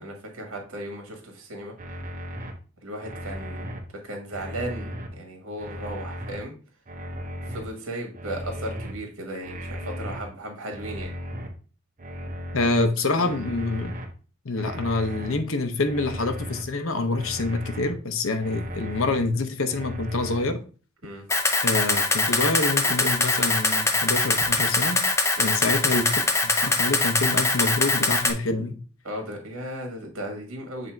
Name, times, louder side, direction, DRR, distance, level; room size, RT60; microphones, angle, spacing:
voice 1, 0.0-1.7 2.8-3.7 4.0-6.5 7.5-11.1 13.2-13.4 21.0-21.2 25.4-25.5 29.0-30.9, right 1 dB, 70° right, 1.6 m, -36 dB
sound 1, 1.8-2.5 3.0-3.8 4.3-5.1 5.6-6.4 6.9-7.6 8.1-8.9 9.4-10.2 10.7-11.5 12.0-12.8 13.3-14.1 14.6-15.3 15.8-16.6 17.1-17.9 18.4-19.2 19.7-20.5, equal, 40° right, 1.0 m, -36 dB
voice 2, 12.5-13.9 14.4-20.6 21.6-25.0 25.4-28.8, left 3 dB, 70° left, 0.9 m, -26 dB
Camera, 21.3-28.3, left 3 dB, 15° left, 0.6 m, -22 dB
7.6 x 2.8 x 4.5 m
head